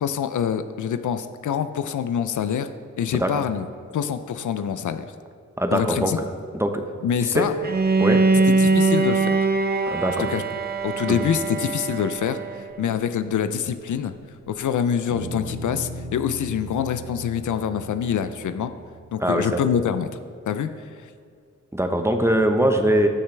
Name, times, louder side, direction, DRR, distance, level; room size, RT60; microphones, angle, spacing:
voice 1, 0.0-2.7 3.0-3.7 3.9-5.1 5.7-6.2 7.0-7.5 8.6-9.4 10.2-10.4 10.8-14.1 14.5-18.7 19.1-20.1 20.5-20.7 21.0-21.1, left 8 dB, 75° left, 11 dB, 0.5 m, -25 dB
voice 2, 5.6-6.1 6.5-6.8 7.2-7.5 8.0-8.2 9.9-10.3 11.1-11.3 19.2-19.6 21.7-23.1, right 1 dB, 10° right, 5 dB, 1.0 m, -22 dB
Bowed string instrument, 7.6-12.6, right 3 dB, 30° right, 0.7 m, -22 dB
Bass guitar, 15.1-19.5, right 1 dB, 70° right, 2.3 m, -37 dB
13.5 x 6.5 x 3.4 m, 2.3 s
cardioid pair, 55°, 30 cm